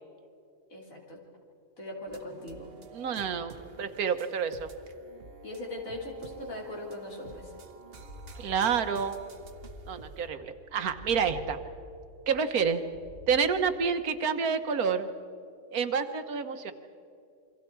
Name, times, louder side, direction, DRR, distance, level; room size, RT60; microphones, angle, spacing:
voice 1, 0.7-1.2 1.8-2.7 5.4-7.5, left 1 dB, 65° left, -1 dB, 3.7 m, -40 dB
sound 1, 2.1-10.3, right 4 dB, 45° right, 1.2 m, -49 dB
voice 2, 2.9-3.5 3.8-4.7 8.4-9.2 9.9-11.6 12.3-12.8 13.3-15.1 15.7-16.7, right 6 dB, 75° right, 9 dB, 1.5 m, -28 dB
sound 2, 7.9-14.0, equal, 35° left, 1.3 m, -49 dB
28.5 x 24.0 x 4.6 m, 2.6 s
omnidirectional pair, 1.6 m